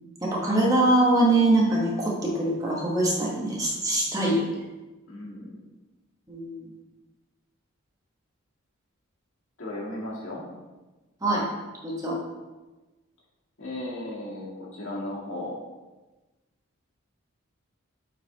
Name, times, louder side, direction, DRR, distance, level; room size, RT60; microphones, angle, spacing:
voice 1, 0.2-4.5 6.3-6.6 11.2-11.4 11.8-12.2, right 2 dB, 15° right, -4 dB, 1.1 m, -23 dB
voice 2, 5.1-5.6 9.6-10.5 13.6-15.6, left 1 dB, 70° left, -5 dB, 1.9 m, -35 dB
7.8 x 4.0 x 4.0 m, 1.2 s
head